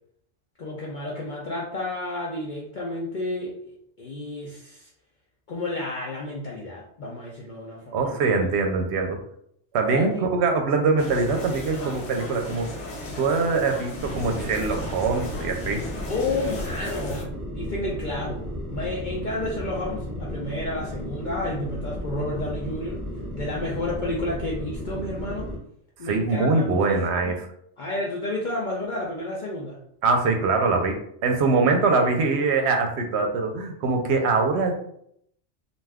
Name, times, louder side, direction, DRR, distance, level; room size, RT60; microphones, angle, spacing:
voice 1, 0.6-4.9 5.5-8.2 9.9-10.1 11.7-11.9 16.1-18.4 18.7-23.0 23.3-25.6 26.0-27.4 27.8-29.8, left 2 dB, 55° left, -4 dB, 0.6 m, -31 dB
voice 2, 7.9-9.2 9.7-12.7 13.2-15.8 26.0-27.5 30.0-34.7, right 4 dB, 70° right, 4 dB, 0.8 m, -23 dB
sound 1, 11.0-17.2, left 1 dB, 80° left, 1.0 m, -36 dB
sound 2, 14.0-25.6, equal, ahead, 0.5 m, -34 dB
2.5 x 2.3 x 3.4 m, 0.70 s
omnidirectional pair, 1.2 m